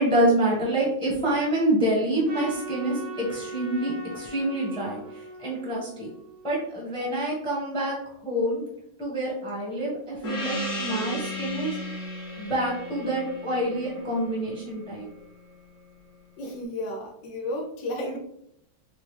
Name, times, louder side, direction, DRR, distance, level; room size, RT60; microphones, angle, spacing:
voice 1, 0.0-6.1 6.4-8.0 8.2-8.6 9.0-11.8 12.4-15.1, right 1 dB, 5° left, -4 dB, 0.9 m, -27 dB
Trumpet, 2.3-6.7, right 2 dB, 90° right, 1.9 m, -40 dB
Gong, 10.2-15.2, left 1 dB, 45° left, 1.2 m, -35 dB
voice 2, 16.4-18.2, left 1 dB, 70° left, 2 dB, 1.1 m, -32 dB
5.0 x 2.3 x 3.2 m, 0.74 s
omnidirectional pair, 2.4 m